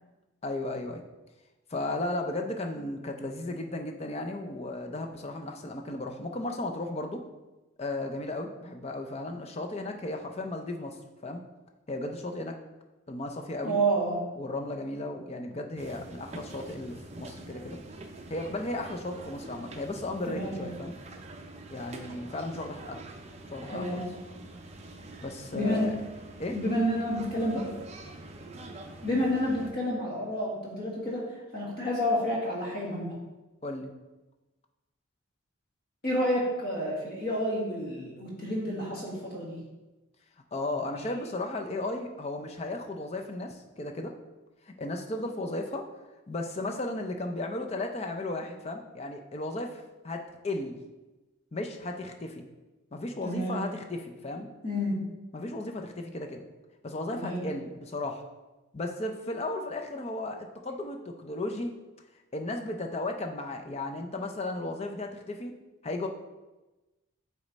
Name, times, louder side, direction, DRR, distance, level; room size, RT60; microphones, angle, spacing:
voice 1, 0.4-1.0 1.7-7.2 7.8-11.0 11.2-11.4 11.9-12.6 13.1-13.7 14.4-17.8 18.3-20.9 21.7-23.0 23.5-24.0 25.2-26.0 26.4-26.5 33.6-33.9 40.5-44.1 44.7-45.9 46.3-50.8 51.5-52.4 52.9-54.5 55.3-56.4 56.8-58.2 58.7-61.7 62.3-65.6 65.8-66.1, left 2 dB, 30° left, 4 dB, 0.5 m, -35 dB
voice 2, 13.6-14.3 20.3-20.7 23.7-24.1 25.5-26.0 26.5-27.7 29.0-33.2 36.0-39.6 53.2-53.7 54.6-55.0 57.1-57.5, equal, 45° left, -3 dB, 1.7 m, -29 dB
sound 1, 15.8-29.7, right 2 dB, 30° right, 0.5 m, -45 dB
8.3 x 3.1 x 4.0 m, 1.1 s
head